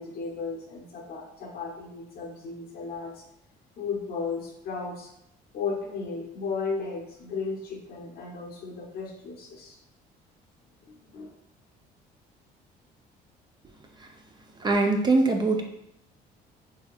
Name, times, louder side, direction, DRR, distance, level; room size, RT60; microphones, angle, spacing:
voice 1, 0.0-3.2 3.8-5.1 5.5-9.8 10.8-11.3, left 4 dB, 65° left, 0 dB, 0.8 m, -35 dB
voice 2, 14.6-15.6, right 3 dB, 25° right, 3 dB, 0.4 m, -22 dB
3.4 x 2.8 x 2.3 m, 0.80 s
cardioid pair, 110°, 17 cm